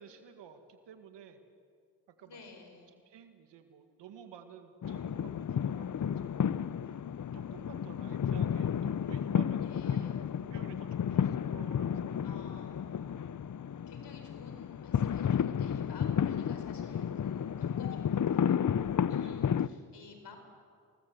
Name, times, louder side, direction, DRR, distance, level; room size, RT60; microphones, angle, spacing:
voice 1, 0.0-1.4 2.1-2.6 3.1-7.0 7.3-12.4 19.2-19.6, right 8 dB, 85° right, 7 dB, 2.1 m, -53 dB
voice 2, 2.2-3.0 9.6-10.3 12.2-13.2 13.9-18.8 19.1-20.4, left 4 dB, 75° left, 5 dB, 4.7 m, -53 dB
sound 1, 4.8-19.7, left 8 dB, 45° left, 0.8 m, -32 dB
27.0 x 20.0 x 7.9 m, 2.2 s
supercardioid pair, 40°, 42 cm